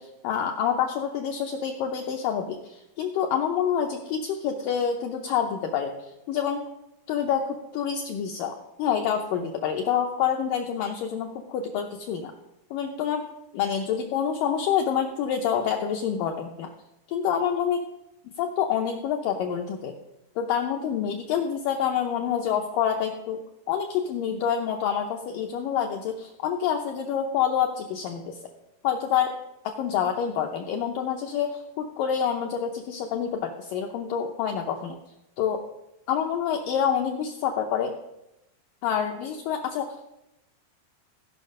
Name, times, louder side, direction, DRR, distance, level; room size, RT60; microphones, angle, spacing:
voice 1, 0.0-6.6 7.1-12.3 12.7-13.3 13.5-16.7 17.1-17.8 18.4-19.9 20.4-23.4 23.7-28.4 28.8-29.3 29.6-35.0 35.4-35.6 36.1-38.0 38.8-40.1, left 8 dB, 75° left, 2 dB, 2.0 m, -27 dB
16.5 x 5.7 x 5.3 m, 0.89 s
omnidirectional pair, 4.7 m